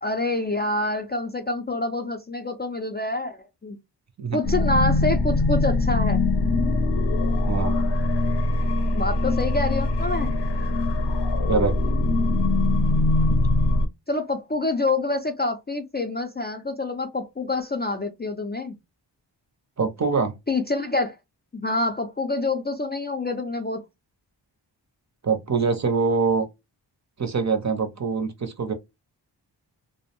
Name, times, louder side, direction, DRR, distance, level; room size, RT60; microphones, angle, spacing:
voice 1, 0.0-3.8 4.3-6.2 8.9-10.3 14.1-18.8 20.5-21.2 21.5-23.8, left 2 dB, 25° left, 0.3 m, -26 dB
sound 1, 4.4-13.9, left 2 dB, 70° left, 0.6 m, -22 dB
voice 2, 7.5-7.8 11.5-11.7 13.3-13.4 19.8-20.3 25.2-26.5 27.2-28.7, right 5 dB, 40° right, 0.5 m, -24 dB
2.5 x 2.0 x 2.8 m
wide cardioid pair, 95°, 43 cm